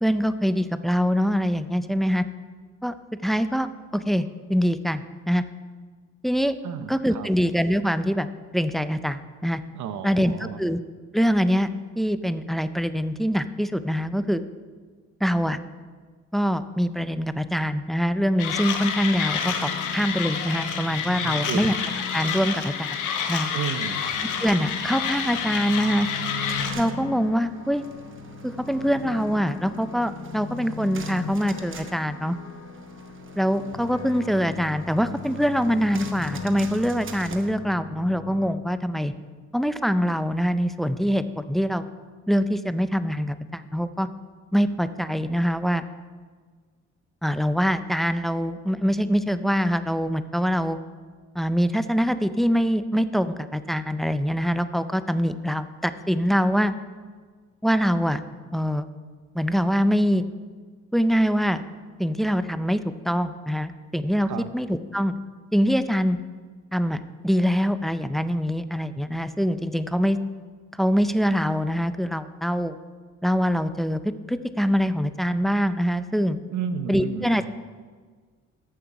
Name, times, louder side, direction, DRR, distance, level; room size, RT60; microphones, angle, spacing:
voice 1, 0.0-2.2 2.8-2.9 3.2-5.4 6.2-6.6 6.9-8.3 8.5-9.6 10.0-10.8 11.1-11.7 12.0-14.4 15.2-15.6 16.3-21.7 22.1-23.0 23.3-23.5 24.4-26.1 26.8-27.8 28.4-32.4 33.4-39.1 39.5-41.9 42.3-44.1 44.5-45.9 47.2-50.8 51.4-56.7 57.6-58.2 58.5-58.9 59.3-60.2 60.9-61.6 62.0-62.8 63.0-65.1 65.5-66.2 66.7-70.2 70.8-72.8 73.2-74.0 74.3-76.4 76.9-77.5, equal, ahead, 12 dB, 0.4 m, -24 dB
voice 2, 6.6-7.3 9.7-10.6 21.2-21.6 23.5-24.0 64.3-64.5 76.5-77.5, right 8 dB, 75° right, 11 dB, 0.8 m, -32 dB
Mechanisms, 18.4-26.7, left 7 dB, 85° left, 1.1 m, -29 dB
sound 1, 19.3-38.5, left 4 dB, 60° left, 0.9 m, -38 dB
sound 2, 26.4-37.5, right 5 dB, 40° right, 0.9 m, -46 dB
14.0 x 5.7 x 4.8 m, 1.5 s
cardioid pair, 90°, 30 cm